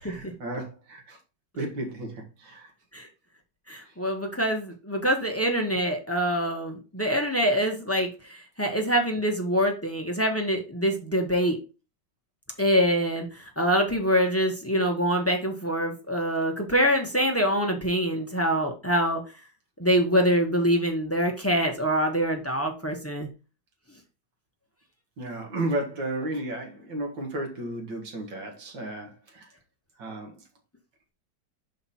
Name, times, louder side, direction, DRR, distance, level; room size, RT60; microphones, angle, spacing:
voice 1, 0.0-1.2 1.6-2.7 25.2-29.5 30.0-30.3, right 1 dB, 75° right, 2.6 m, -33 dB
voice 2, 3.7-8.1 8.6-11.6 12.6-13.3 13.6-19.2 19.8-23.3, equal, 10° left, 0.8 m, -25 dB
5.9 x 5.1 x 4.2 m
omnidirectional pair, 2.0 m